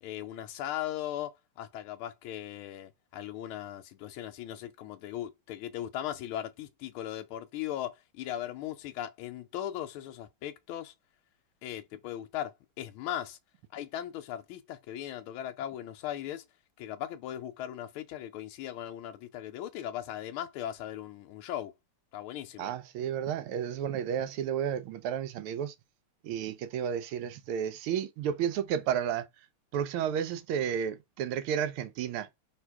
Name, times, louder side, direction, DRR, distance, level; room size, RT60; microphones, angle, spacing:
voice 1, 0.0-10.9 11.6-13.4 13.7-16.4 16.8-21.7 22.1-22.7, left 11 dB, 80° left, 1.3 m, -38 dB
voice 2, 22.6-25.7 26.2-29.3 29.7-32.3, right 8 dB, 80° right, 1.4 m, -32 dB
3.6 x 2.8 x 4.5 m
omnidirectional pair, 2.4 m